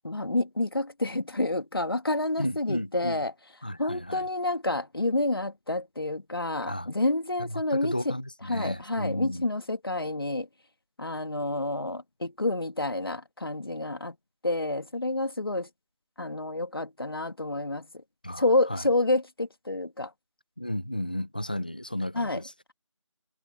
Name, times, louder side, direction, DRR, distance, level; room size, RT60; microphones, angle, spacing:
voice 1, 0.0-3.3 3.8-8.1 8.4-10.5 11.0-14.2 14.4-15.7 16.2-17.9 18.4-20.1 22.1-22.4, left 2 dB, 45° left, 2.2 m, -29 dB
voice 2, 2.4-3.2 3.6-4.3 6.7-6.9 7.4-9.4 18.2-18.8 20.6-22.5, left 1 dB, 15° left, 1.2 m, -33 dB
figure-of-eight pair, 180°, 16 cm